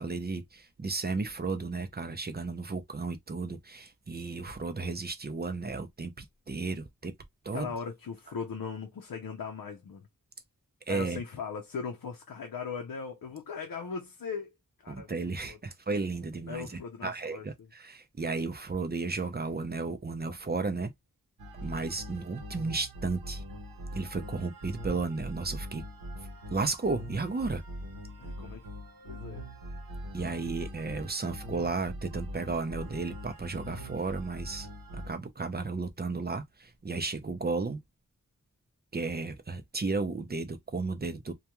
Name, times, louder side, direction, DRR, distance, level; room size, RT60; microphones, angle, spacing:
voice 1, 0.0-7.1 7.4-7.7 10.9-11.2 14.9-16.7 17.0-20.9 21.6-23.4 24.0-25.8 26.5-27.6 30.1-34.7 34.9-37.8 38.9-41.3, right 3 dB, 30° right, 0.5 m, -33 dB
voice 2, 7.5-10.1 10.9-14.5 14.8-15.1 15.4-15.6 16.5-17.7 28.2-28.7 29.0-29.4, left 5 dB, 90° left, 0.6 m, -39 dB
sound 1, 21.4-35.1, equal, 85° right, 0.8 m, -42 dB
2.3 x 2.2 x 2.9 m
wide cardioid pair, 90°, 33 cm